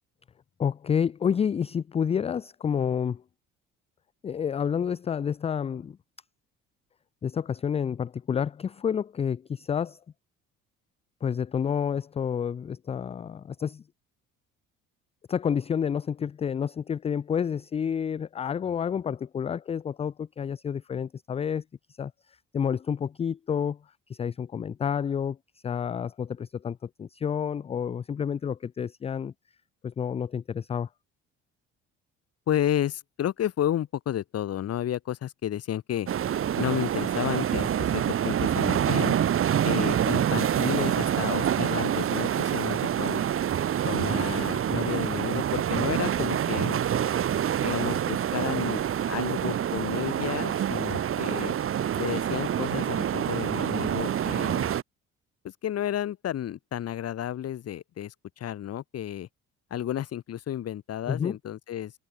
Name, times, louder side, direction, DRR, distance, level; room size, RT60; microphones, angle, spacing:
voice 1, 0.6-3.2 4.2-6.0 7.2-10.0 11.2-13.8 15.3-21.6 22.0-22.1 22.5-23.8 24.1-25.4 25.6-29.3 29.8-30.9 61.1-61.4, left 7 dB, 20° left, 0.3 m, -29 dB
voice 2, 32.5-36.1 36.5-39.2 39.6-43.2 43.8-46.8 47.6-48.8 49.1-51.6 52.0-54.7 55.4-59.3 59.7-61.9, left 11 dB, 55° left, 1.7 m, -31 dB
sound 1, 36.1-54.8, right 10 dB, 45° right, 1.2 m, -26 dB
open air
supercardioid pair, 70°, 30 cm